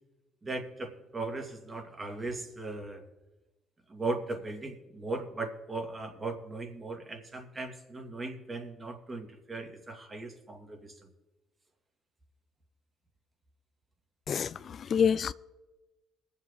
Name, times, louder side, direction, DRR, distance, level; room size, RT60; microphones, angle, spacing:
voice 1, 0.4-3.0 3.9-11.1, right 3 dB, 30° right, 2.5 m, -38 dB
voice 2, 14.3-15.3, left 7 dB, 50° left, 0.3 m, -27 dB
21.5 x 7.4 x 4.0 m
supercardioid pair, 65°, 0 cm